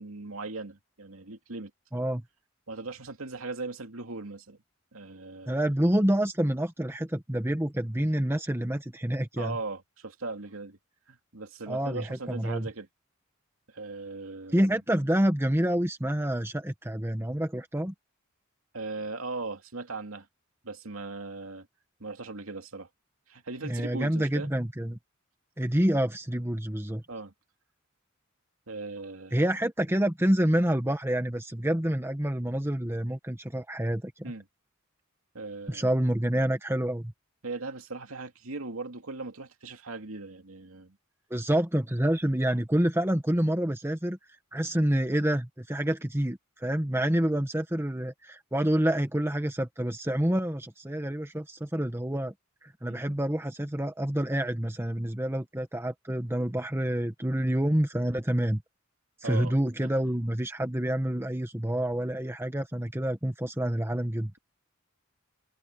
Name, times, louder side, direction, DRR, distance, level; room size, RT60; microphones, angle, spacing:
voice 1, 0.0-1.7 2.7-4.6 4.9-5.6 9.4-10.8 11.1-12.9 13.7-14.7 18.7-20.3 20.6-21.7 22.0-22.9 23.3-24.5 27.1-27.3 28.7-29.5 34.2-34.4 35.3-35.9 37.4-41.0 46.9-47.0 52.9-53.0 59.2-59.5 59.8-59.9, right 3 dB, 85° right, 2.6 m, -38 dB
voice 2, 1.9-2.2 5.5-9.6 11.7-12.7 14.5-17.9 23.6-25.0 25.6-27.0 29.3-34.2 35.7-37.1 41.3-44.2 44.5-52.3 52.6-58.6 59.2-64.3, right 1 dB, 10° right, 1.5 m, -28 dB
head